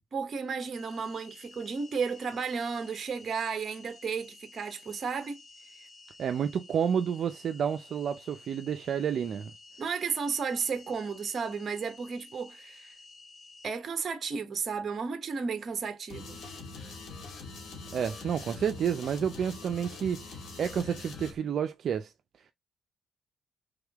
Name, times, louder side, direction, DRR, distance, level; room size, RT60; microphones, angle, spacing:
voice 1, 0.1-5.4 9.8-12.9 13.6-16.4, right 5 dB, 45° right, 0.9 m, -33 dB
sound 1, 0.7-13.7, left 3 dB, 45° left, 2.2 m, -53 dB
voice 2, 6.2-9.5 17.9-22.1, right 8 dB, 60° right, 0.4 m, -30 dB
sound 2, 16.1-21.3, left 3 dB, 70° left, 2.1 m, -43 dB
3.6 x 3.5 x 3.4 m
cardioid pair, 90°, 0 cm